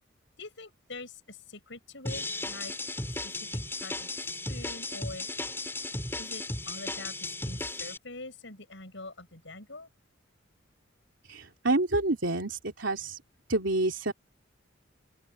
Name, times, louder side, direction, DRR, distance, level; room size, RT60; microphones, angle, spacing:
voice 1, 0.4-2.7 3.0-5.3 6.2-9.9, left 3 dB, 70° left, 6.9 m, -45 dB
sound 1, 2.1-8.0, left 2 dB, 10° left, 4.4 m, -35 dB
voice 2, 11.3-13.2 13.5-14.1, right 2 dB, 70° right, 3.1 m, -28 dB
open air
head